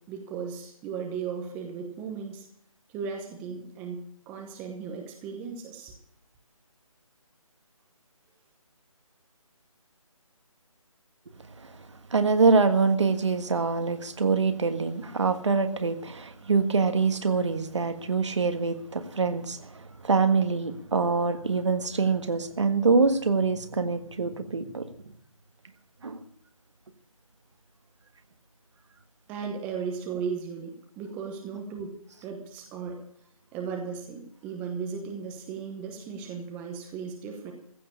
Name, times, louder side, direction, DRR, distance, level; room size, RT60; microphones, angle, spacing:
voice 1, 0.1-2.5 2.9-4.0 4.3-5.9 29.3-33.0 33.5-37.5, right 6 dB, 10° right, 0.9 m, -36 dB
voice 2, 12.1-19.7 20.0-24.8 26.0-26.2, right 4 dB, 55° right, 1.5 m, -24 dB
15.5 x 7.7 x 8.5 m
figure-of-eight pair, 160°, 18 cm